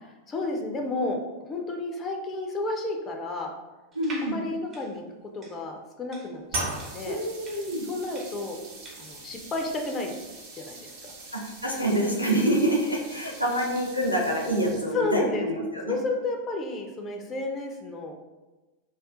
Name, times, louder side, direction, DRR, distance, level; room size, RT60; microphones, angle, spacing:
voice 1, 0.0-3.5 4.2-5.0 5.3-7.2 7.9-8.6 9.0-10.1 10.5-11.1 12.3-12.6 14.9-15.5 15.9-18.1, left 2 dB, 25° left, 3 dB, 0.4 m, -31 dB
voice 2, 3.9-4.4 7.1-7.9 11.3-15.9, right 1 dB, 85° left, 0 dB, 0.6 m, -26 dB
sound 1, 3.9-9.9, right 2 dB, 25° right, 0.6 m, -47 dB
sound 2, 6.5-15.1, right 2 dB, 55° right, 0.8 m, -40 dB
2.4 x 2.3 x 3.6 m, 1.1 s
figure-of-eight pair, 90°, 0 cm